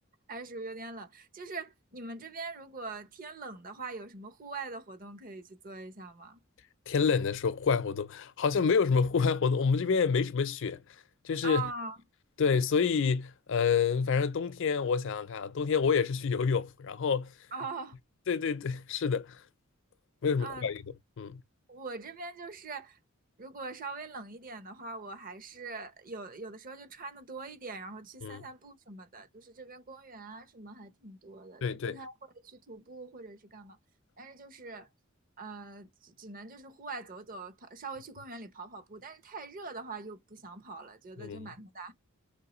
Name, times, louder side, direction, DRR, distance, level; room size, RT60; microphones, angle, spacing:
voice 1, 0.3-6.4 11.4-12.0 17.5-18.0 20.4-20.6 21.7-23.0 23.4-32.1 32.4-33.8 34.2-34.9 35.4-41.9, right 3 dB, 45° right, 0.8 m, -43 dB
voice 2, 6.9-10.8 11.2-11.7 12.4-17.3 18.3-19.4 20.2-20.8 21.2-21.4 28.2-28.4 31.6-32.0 41.2-41.5, left 5 dB, 65° left, 0.5 m, -28 dB
4.5 x 3.1 x 3.0 m
head